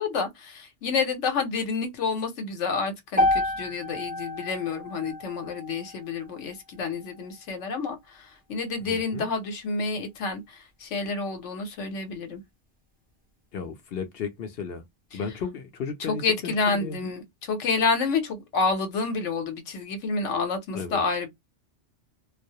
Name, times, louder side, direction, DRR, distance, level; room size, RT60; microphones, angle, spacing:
voice 1, 0.0-12.4 15.1-15.2 16.0-21.3, left 4 dB, 85° left, 1.1 m, -29 dB
sound 1, 3.2-7.3, left 1 dB, 10° right, 0.4 m, -30 dB
voice 2, 8.8-9.3 13.5-14.8 15.1-17.1 20.7-21.0, left 5 dB, 60° left, 0.7 m, -34 dB
2.3 x 2.0 x 2.7 m
omnidirectional pair, 1.2 m